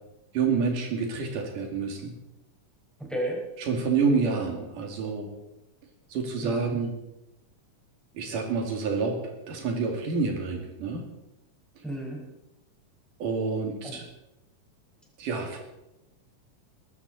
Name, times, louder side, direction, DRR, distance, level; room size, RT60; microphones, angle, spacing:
voice 1, 0.3-2.1 3.6-5.3 6.1-6.9 8.1-9.2 9.5-11.0 13.2-14.0 15.2-15.6, right 4 dB, 80° right, 2 dB, 4.1 m, -28 dB
voice 2, 3.0-3.4 6.4-6.8 11.8-12.2 13.8-14.0, right 1 dB, ahead, -2 dB, 4.9 m, -32 dB
21.0 x 13.5 x 4.2 m, 0.92 s
omnidirectional pair, 3.7 m